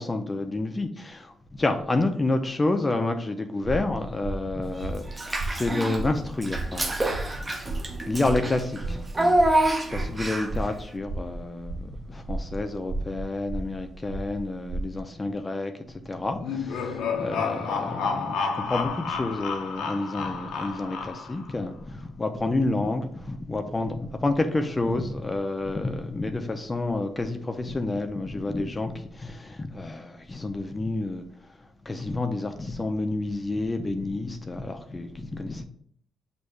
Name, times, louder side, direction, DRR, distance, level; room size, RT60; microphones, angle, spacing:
voice 1, 0.0-9.0 9.9-35.6, left 2 dB, 20° left, 0.5 m, -29 dB
sound 1, 3.6-15.0, right 2 dB, 80° right, 0.8 m, -35 dB
Child speech kid speaking / Bathtub (filling or washing), 5.1-6.0 6.4-10.6, right 1 dB, 20° right, 0.6 m, -26 dB
sound 2, 16.4-21.5, left 5 dB, 85° left, 0.6 m, -30 dB
6.4 x 2.6 x 3.1 m
cardioid pair, 90°, 0 cm